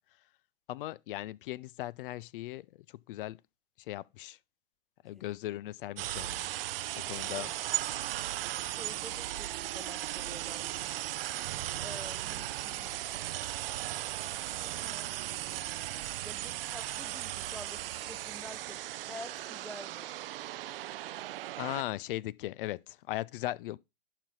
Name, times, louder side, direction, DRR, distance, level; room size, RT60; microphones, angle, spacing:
voice 1, 0.7-3.4 3.9-4.4 5.0-6.5 6.9-7.5 21.6-23.8, left 15 dB, 60° left, 0.5 m, -38 dB
sound 1, 6.0-21.8, right 14 dB, 65° right, 0.5 m, -37 dB
voice 2, 7.2-7.5 8.6-11.0 11.8-13.1 14.6-15.9 16.2-20.1, left 1 dB, ahead, 0.6 m, -49 dB
11.5 x 4.2 x 4.0 m
figure-of-eight pair, 95°, 31 cm